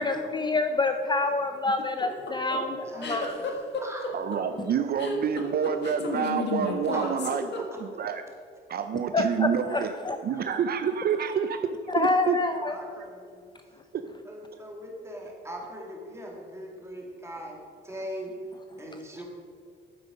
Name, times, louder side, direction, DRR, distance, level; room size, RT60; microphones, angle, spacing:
voice 1, 0.0-3.4 9.1-10.2 11.9-12.8, left 3 dB, 20° left, 7 dB, 0.5 m, -27 dB
sound 1, 1.8-8.1, left 3 dB, 60° left, 1.4 m, -32 dB
voice 2, 2.9-4.1 6.9-7.2 7.5-7.6 10.3-10.4 12.6-13.5 14.3-17.6 17.8-18.3 18.8-19.2, equal, 15° right, -1 dB, 2.3 m, -40 dB
voice 3, 4.1-8.2 8.7-10.0 10.2-12.4 13.9-14.0, right 7 dB, 50° right, 8 dB, 0.5 m, -28 dB
8.7 x 7.8 x 5.1 m, 2.1 s
cardioid pair, 90°, 20 cm